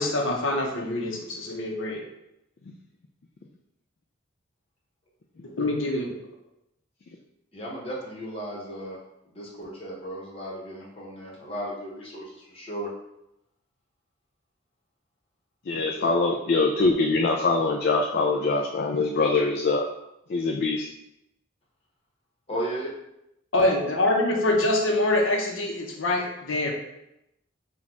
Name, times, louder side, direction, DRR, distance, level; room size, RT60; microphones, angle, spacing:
voice 1, 0.0-2.0 5.5-6.1 16.0-16.1 23.5-26.7, left 2 dB, 75° left, 1 dB, 0.8 m, -25 dB
voice 2, 7.5-9.0 9.2-12.9 22.5-22.9, right 1 dB, 30° left, -4 dB, 1.1 m, -35 dB
voice 3, 15.7-19.9 20.3-20.9, left 3 dB, 50° left, 2 dB, 0.4 m, -23 dB
4.1 x 2.4 x 4.5 m, 0.84 s
head